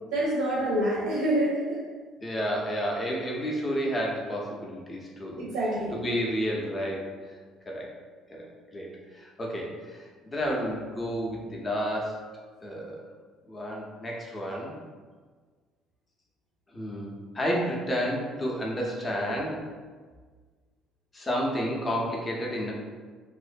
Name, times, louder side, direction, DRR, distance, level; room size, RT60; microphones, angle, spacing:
voice 1, 0.1-1.8 5.4-5.9, right 1 dB, 75° right, -6 dB, 0.6 m, -26 dB
voice 2, 2.2-5.4 5.9-7.4 7.7-7.9 8.3-12.2 12.6-13.0 13.5-14.7 16.7-19.7 21.1-22.7, equal, 25° left, -2 dB, 0.6 m, -31 dB
2.4 x 2.1 x 2.5 m, 1.5 s
hypercardioid pair, 55°, 0 cm